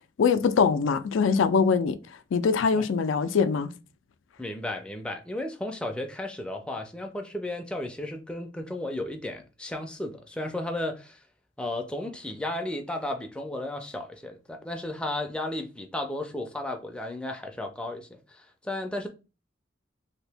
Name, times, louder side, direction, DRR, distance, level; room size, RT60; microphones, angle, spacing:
voice 1, 0.2-2.0 2.3-3.7, left 5 dB, 90° left, 0.4 m, -23 dB
voice 2, 4.4-11.2 11.6-19.1, left 1 dB, 5° left, 0.4 m, -34 dB
2.8 x 2.5 x 3.4 m
head